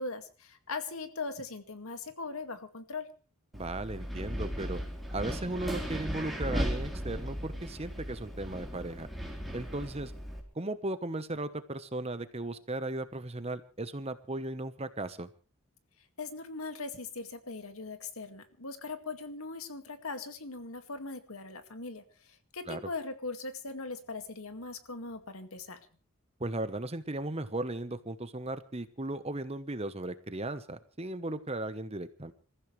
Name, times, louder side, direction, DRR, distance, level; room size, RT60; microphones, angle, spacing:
voice 1, 0.0-3.1 16.2-25.8, left 3 dB, 70° left, 8 dB, 2.1 m, -40 dB
Wind, 3.5-10.4, equal, ahead, 3.9 m, -36 dB
voice 2, 3.5-4.8 5.1-9.1 9.5-10.1 10.5-15.3 22.7-22.8 26.4-32.3, right 2 dB, 25° right, 12 dB, 1.1 m, -36 dB
27.5 x 14.5 x 3.3 m, 0.38 s
head